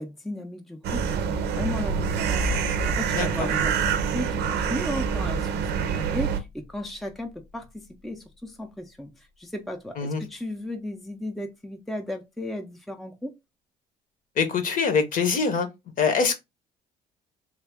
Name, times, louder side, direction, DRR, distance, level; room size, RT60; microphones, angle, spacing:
voice 1, 0.0-13.3, left 1 dB, ahead, 0.5 m, -35 dB
sound 1, 0.8-6.4, right 7 dB, 80° right, 0.5 m, -26 dB
sound 2, 1.6-7.9, left 3 dB, 80° left, 0.6 m, -37 dB
voice 2, 3.1-3.5 10.0-10.2 14.4-15.7 16.0-16.4, left 5 dB, 55° left, 0.9 m, -24 dB
3.4 x 2.2 x 3.4 m
cardioid pair, 110°, 17 cm